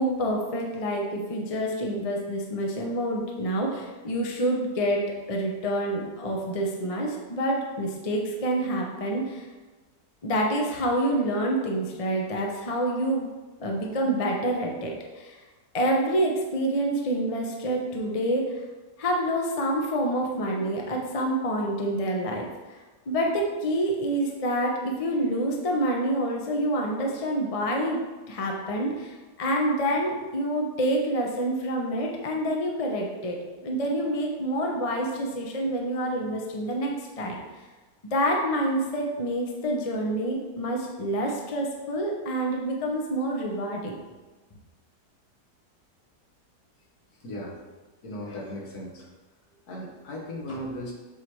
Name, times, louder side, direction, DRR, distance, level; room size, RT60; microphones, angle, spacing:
voice 1, 0.0-9.5 10.2-13.3 13.6-15.4 15.7-18.6 19.0-22.8 23.1-28.0 28.3-37.4 38.1-44.0, right 1 dB, 30° left, 0 dB, 0.7 m, -27 dB
voice 2, 47.1-47.6 48.0-49.1 49.5-50.9, left 1 dB, 65° left, -2 dB, 1.7 m, -37 dB
8.1 x 3.2 x 4.7 m, 1.2 s
omnidirectional pair, 1.8 m